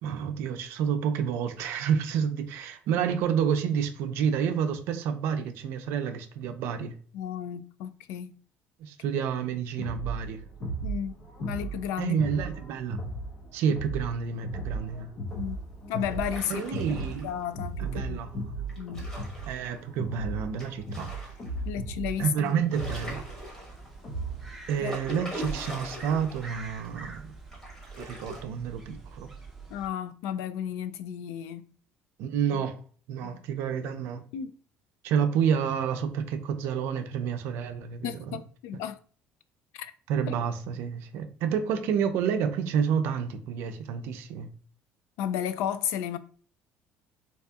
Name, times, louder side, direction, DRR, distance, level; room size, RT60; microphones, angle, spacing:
voice 1, 0.0-6.9 8.8-10.4 12.0-13.0 13.5-15.1 16.5-17.3 17.8-18.3 19.5-21.1 22.2-23.2 24.7-27.3 28.0-29.3 32.2-32.8 33.1-34.2 35.0-38.4 40.1-44.5, right 7 dB, 65° right, 0.5 m, -29 dB
voice 2, 7.1-8.4 10.8-11.1 11.4-12.2 15.3-15.6 15.9-16.6 16.9-18.3 18.8-19.0 21.7-22.6 24.8-25.0 29.7-31.7 32.5-32.6 33.2-33.4 34.3-34.5 38.0-38.9 39.7-39.9 40.3-40.4 45.2-46.2, left 9 dB, 80° left, 0.3 m, -33 dB
sound 1, 9.8-24.6, right 2 dB, 35° left, 0.6 m, -36 dB
sound 2, 16.1-17.4 18.7-19.8 20.6-21.6 22.0-22.1 22.4-24.0 24.6-26.6 26.8-26.9 27.5-28.4, equal, 15° left, 1.1 m, -41 dB
sound 3, 23.1-29.9, right 4 dB, ahead, 0.7 m, -45 dB
4.1 x 2.7 x 2.3 m
cardioid pair, 175°, 4 cm